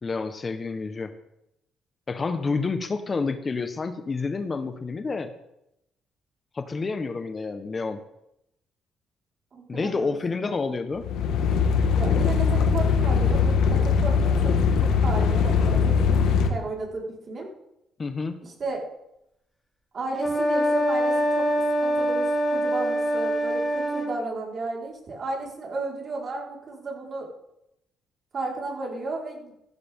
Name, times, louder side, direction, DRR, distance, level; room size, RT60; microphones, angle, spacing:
voice 1, 0.0-1.1 2.1-5.3 6.5-8.0 9.7-11.1 18.0-18.4, left 4 dB, 35° left, 9 dB, 1.2 m, -29 dB
voice 2, 9.5-10.5 11.9-16.2 16.5-17.5 18.4-18.8 19.9-21.5 21.8-27.3 28.3-29.5, right 3 dB, 50° right, -2 dB, 4.6 m, -34 dB
sound 1, 11.0-16.5, left 6 dB, 90° left, 1.7 m, -21 dB
sound 2, 20.2-24.1, equal, ahead, 5.4 m, -24 dB
15.0 x 14.5 x 3.7 m, 0.83 s
cardioid pair, 90°, 0 cm